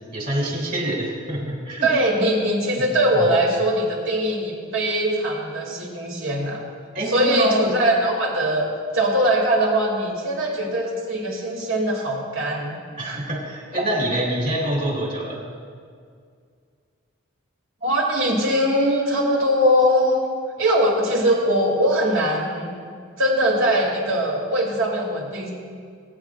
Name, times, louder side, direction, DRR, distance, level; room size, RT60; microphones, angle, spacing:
voice 1, 0.1-1.9 3.1-3.3 6.9-7.8 13.0-15.4, right 1 dB, 45° right, -2 dB, 2.9 m, -25 dB
voice 2, 1.8-6.6 7.1-8.7 8.9-12.8 13.0-13.2 13.7-13.8 17.8-20.2 20.6-22.7 23.2-25.5, equal, 70° right, -2 dB, 2.8 m, -21 dB
23.0 x 9.2 x 2.5 m, 2.1 s
head